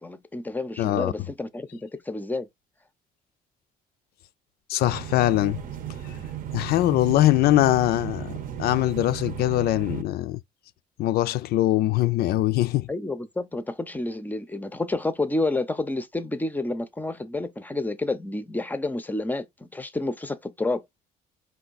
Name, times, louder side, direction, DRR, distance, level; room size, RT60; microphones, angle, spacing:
voice 1, 0.0-2.5 12.9-20.8, left 2 dB, 10° left, 0.5 m, -29 dB
voice 2, 0.8-1.1 4.7-5.6 6.5-10.4 11.0-12.9, left 15 dB, 70° left, 0.4 m, -22 dB
sound 1, 4.8-10.0, right 10 dB, 55° right, 0.7 m, -35 dB
4.4 x 2.7 x 4.0 m
cardioid pair, 110°, 17 cm